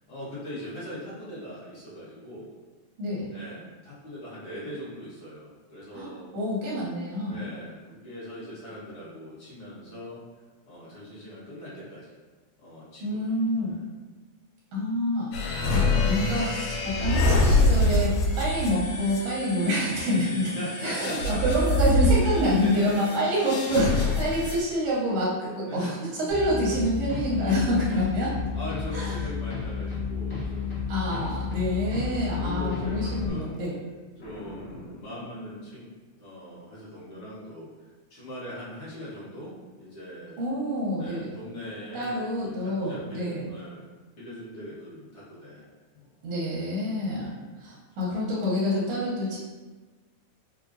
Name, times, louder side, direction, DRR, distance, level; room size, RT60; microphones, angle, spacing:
voice 1, 0.1-2.5 3.3-6.3 7.3-10.2 10.7-12.2 12.6-13.3 13.7-13.9 20.5-21.7 22.6-23.1 24.4-24.6 25.7-26.0 27.3-27.8 28.5-33.5 34.2-35.9 36.1-40.4 41.0-43.8 44.2-45.7 45.9-46.1 47.1-47.4, equal, 55° left, -10 dB, 1.5 m, -40 dB
voice 2, 3.0-3.3 5.9-7.5 13.0-13.8 14.7-15.3 15.7-20.5 20.8-28.3 28.9-29.1 30.9-33.8 40.4-41.3 41.9-43.4 46.2-47.3 47.6-49.4, equal, 75° right, -6 dB, 1.4 m, -27 dB
sound 1, 15.3-24.6, left 2 dB, 90° left, 2.2 m, -25 dB
sound 2, 26.3-33.3, left 5 dB, 35° left, 0.7 m, -32 dB
Boom, 34.2-36.0, left 1 dB, 70° left, 1.8 m, -46 dB
4.9 x 2.3 x 2.5 m, 1.3 s
omnidirectional pair, 3.5 m